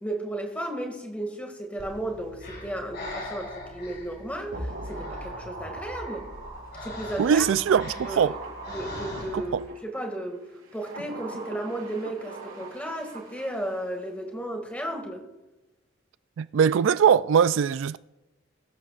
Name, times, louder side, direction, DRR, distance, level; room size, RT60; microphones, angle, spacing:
voice 1, 0.0-6.3 6.8-7.5 8.0-8.4 8.7-10.4 10.7-15.2, right 1 dB, 5° left, 2.1 m, -34 dB
Breathing, 1.8-9.7, left 1 dB, 50° left, 5.8 m, -42 dB
sound 1, 4.5-10.0 10.6-13.8 14.1-14.2, right 2 dB, 85° right, 4.5 m, -40 dB
voice 2, 7.2-8.3 9.3-9.4 16.4-18.0, right 7 dB, 70° right, 0.3 m, -21 dB
22.5 x 12.5 x 2.5 m
head